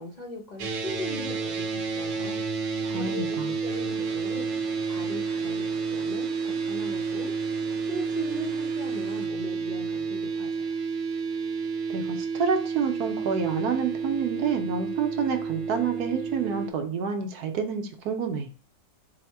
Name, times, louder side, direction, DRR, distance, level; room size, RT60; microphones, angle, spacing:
voice 1, 0.0-2.4 2.9-10.8, left 1 dB, 70° left, -1 dB, 0.4 m, -39 dB
sound 1, 0.6-16.7, right 5 dB, 85° right, 1.3 m, -30 dB
voice 2, 2.8-3.5 11.9-18.5, right 6 dB, 70° right, 4 dB, 1.1 m, -28 dB
sound 2, 3.7-9.3, right 3 dB, 55° right, 0.4 m, -47 dB
4.2 x 2.1 x 4.4 m, 0.38 s
omnidirectional pair, 1.9 m